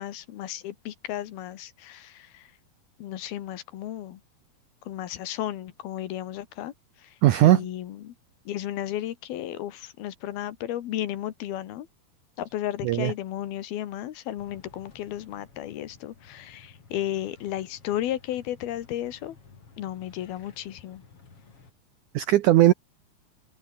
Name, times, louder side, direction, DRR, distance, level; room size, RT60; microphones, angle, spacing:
voice 1, 0.0-2.5 3.0-4.2 4.9-6.7 7.0-7.2 7.4-8.1 8.5-11.9 12.4-19.4 19.8-21.0, left 12 dB, 75° left, 3.3 m, -34 dB
voice 2, 7.2-7.7 12.8-13.1 22.1-22.7, right 14 dB, 75° right, 1.9 m, -18 dB
sound 1, 14.4-21.7, left 4 dB, 35° left, 4.5 m, -54 dB
omnidirectional pair, 4.6 m